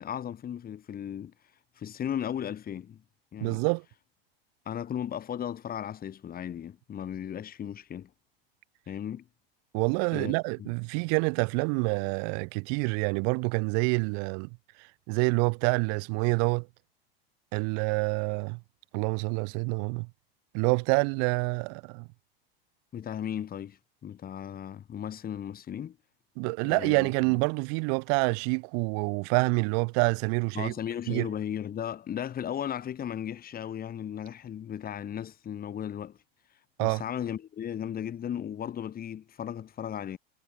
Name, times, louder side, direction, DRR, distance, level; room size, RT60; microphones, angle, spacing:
voice 1, 0.0-1.3 1.8-3.0 3.3-3.6 4.6-8.1 8.9-9.2 10.1-10.3 10.6-10.7 22.9-26.0 26.6-27.4 30.5-36.2 36.8-40.2, left 9 dB, 30° left, 3.3 m, -36 dB
voice 2, 3.4-3.8 9.7-14.5 14.8-16.7 17.5-18.6 18.9-20.1 20.5-22.1 26.4-30.7 31.1-31.3 36.8-37.0, right 40 dB or more, 55° right, 1.0 m, -27 dB
hypercardioid pair, 110°, 30 cm